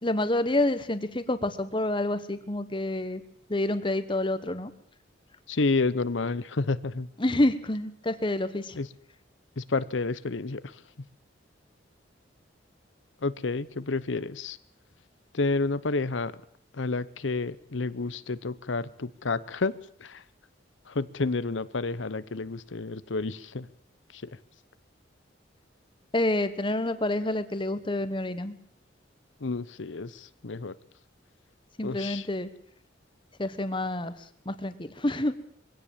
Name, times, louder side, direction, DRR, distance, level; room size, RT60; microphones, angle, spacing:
voice 1, 0.0-3.2 3.5-4.7 7.2-8.8 26.1-28.5 31.8-32.5 33.4-34.1 34.4-35.4, left 1 dB, 25° left, 11 dB, 1.3 m, -28 dB
voice 2, 5.5-7.1 8.8-8.9 9.6-10.8 13.2-14.6 15.3-16.4 16.7-20.2 20.9-23.7 24.1-24.4 29.4-30.8 31.8-32.3, left 3 dB, 85° left, 16 dB, 0.8 m, -30 dB
22.5 x 16.5 x 7.4 m, 0.65 s
head